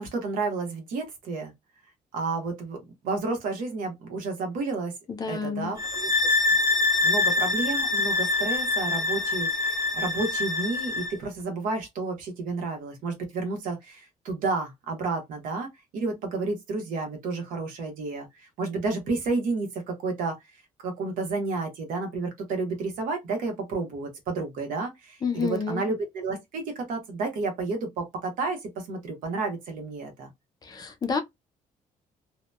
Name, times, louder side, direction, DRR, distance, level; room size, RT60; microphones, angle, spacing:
voice 1, 0.0-1.5 2.1-2.8 3.0-4.9 5.2-6.1 7.0-18.3 18.6-20.4 20.8-30.3, right 3 dB, 80° right, 1.0 m, -31 dB
voice 2, 5.1-5.7 25.2-25.8 30.6-31.2, left 5 dB, 30° left, 0.4 m, -29 dB
sound 1, 5.8-11.2, left 3 dB, 25° right, 0.7 m, -25 dB
2.8 x 2.1 x 2.2 m
cardioid pair, 160°, 14 cm